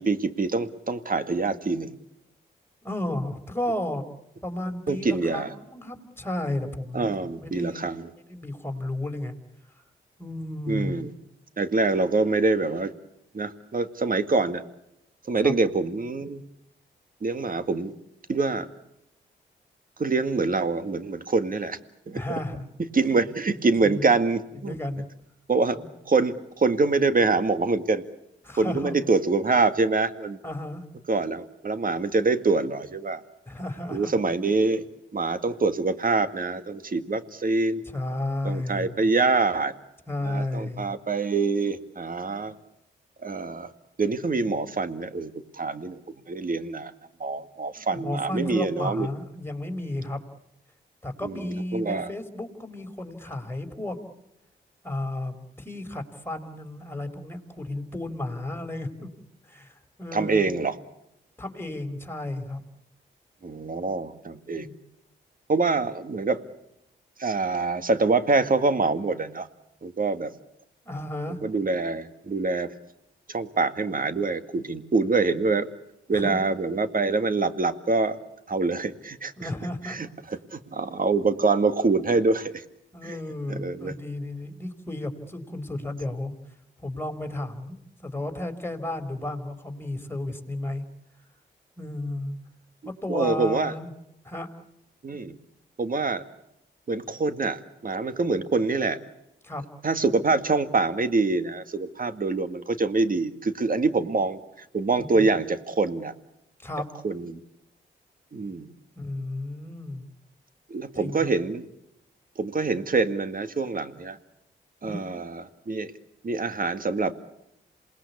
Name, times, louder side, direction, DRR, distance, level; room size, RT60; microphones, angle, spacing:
voice 1, 0.0-1.9 4.9-5.5 6.9-8.1 10.7-11.1 11.6-12.9 13.3-14.6 15.3-16.4 17.2-17.9 18.3-18.7 20.0-21.8 22.1-22.2 22.9-24.8 25.5-25.8 26.1-28.0 28.6-30.4 31.1-33.2 33.9-34.8 35.1-37.8 38.4-39.7 40.2-42.5 43.2-43.7 44.0-46.0 46.3-46.9 47.2-49.1 51.2-51.4 51.7-52.1 60.1-60.8 63.4-64.7 65.5-66.4 67.2-69.5 69.8-70.3 71.4-72.7 73.3-75.7 76.1-78.2 78.5-79.5 79.8-80.1 80.5-82.6 83.0-83.2 83.5-83.9 93.1-93.7 95.0-95.4 95.8-96.2 96.9-99.0 99.8-106.1 107.0-107.4 108.3-108.7 110.7-111.7 112.4-114.2 114.8-115.9 116.2-117.1, right 3 dB, 45° right, 10 dB, 2.0 m, -25 dB
voice 2, 2.8-4.0 4.4-7.8 8.3-9.3 10.2-11.1 15.3-15.5 22.1-22.7 23.5-24.1 24.6-25.0 25.7-25.9 28.4-28.9 30.4-30.8 33.5-34.2 37.9-39.0 40.1-40.9 47.7-50.2 51.0-54.0 54.8-59.1 59.4-60.5 61.4-62.6 64.5-64.7 70.8-71.4 76.1-76.4 79.4-80.0 82.9-86.3 86.8-90.8 91.8-92.4 92.8-93.9 94.2-94.5 99.4-99.6 105.0-105.3 106.6-106.9 109.0-110.0 110.9-111.3 114.8-115.1, left 1 dB, 10° left, 6 dB, 4.6 m, -33 dB
27.5 x 20.0 x 8.5 m, 0.85 s
cardioid pair, 50°, 20 cm